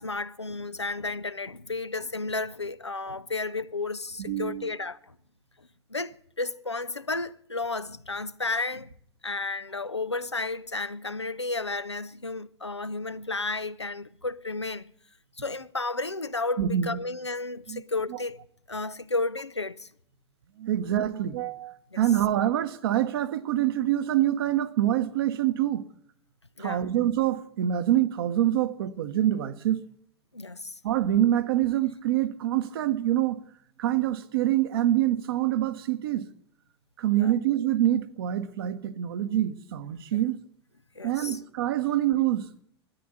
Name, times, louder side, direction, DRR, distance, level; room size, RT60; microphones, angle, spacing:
voice 1, 0.0-5.2 5.9-8.9 9.2-14.9 15.4-18.4 18.7-19.9 21.9-22.0 26.6-26.9 30.3-30.8 37.1-37.3 40.1-40.2 41.0-41.4, left 3 dB, 90° left, 0.5 m, -32 dB
voice 2, 4.3-4.7 16.6-17.0 17.7-17.8 20.6-25.8 26.6-29.8 30.8-33.4 33.8-36.2 37.0-40.4 41.0-42.6, right 12 dB, 60° right, 1.1 m, -25 dB
13.0 x 10.5 x 9.5 m
figure-of-eight pair, 85°, 14 cm